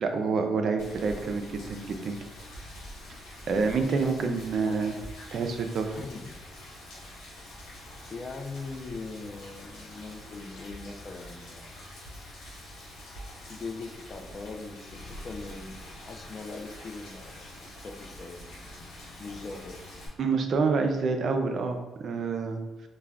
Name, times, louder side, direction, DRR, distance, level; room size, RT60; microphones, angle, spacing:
voice 1, 0.0-2.2 3.5-4.9 5.3-6.0 20.2-22.6, right 4 dB, 60° right, 5 dB, 0.4 m, -27 dB
Rain, 0.8-20.1, left 1 dB, 85° left, 0.8 m, -45 dB
voice 2, 4.5-4.9 5.9-6.4 8.1-11.7 13.5-18.7 19.2-19.8, left 3 dB, 40° left, 4 dB, 0.4 m, -41 dB
2.3 x 2.2 x 3.3 m, 1.2 s
cardioid pair, 90°, 0 cm